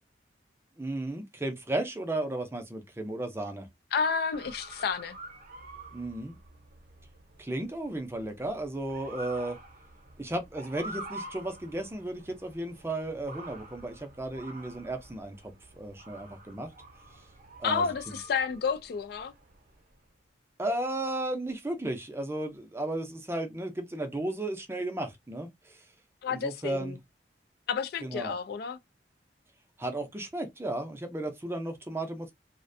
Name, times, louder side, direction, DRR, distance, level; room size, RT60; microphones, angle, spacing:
voice 1, 0.8-3.7 5.9-6.4 7.4-9.6 10.2-16.7 17.6-18.2 20.6-25.8 26.3-27.0 28.0-28.3 29.8-32.3, right 1 dB, 15° right, 0.5 m, -34 dB
voice 2, 3.9-5.2 17.6-19.3 26.2-27.0 27.7-28.8, left 6 dB, 60° left, 0.3 m, -30 dB
Motor vehicle (road) / Siren, 4.3-19.9, right 2 dB, 50° right, 0.7 m, -48 dB
2.4 x 2.1 x 2.5 m
head